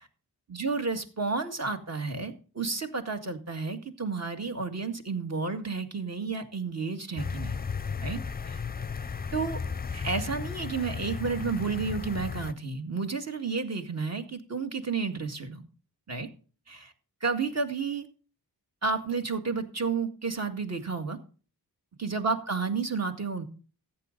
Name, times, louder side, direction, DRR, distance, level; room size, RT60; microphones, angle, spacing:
voice 1, 0.5-7.6 8.0-8.2 8.5-8.6 9.3-9.6 9.9-15.6 16.1-16.3 16.7-16.9 17.2-18.1 18.8-21.2 22.0-23.4, right 4 dB, 40° right, 6 dB, 2.1 m, -31 dB
sound 1, 7.2-12.5, left 6 dB, 25° left, 0.6 m, -35 dB
14.0 x 8.8 x 4.0 m, 0.37 s
cardioid pair, 80°, 40 cm